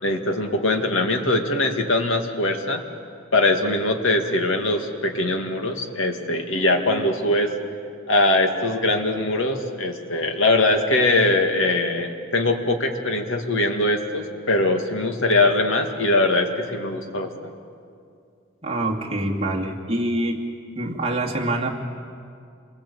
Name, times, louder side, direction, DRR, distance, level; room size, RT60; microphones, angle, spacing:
voice 1, 0.0-2.8 3.3-7.5 8.1-17.5, left 2 dB, 70° left, 4 dB, 2.2 m, -22 dB
voice 2, 18.6-20.5 20.7-21.7, right 1 dB, 30° right, -1 dB, 2.4 m, -25 dB
27.5 x 21.5 x 8.5 m, 2.4 s
head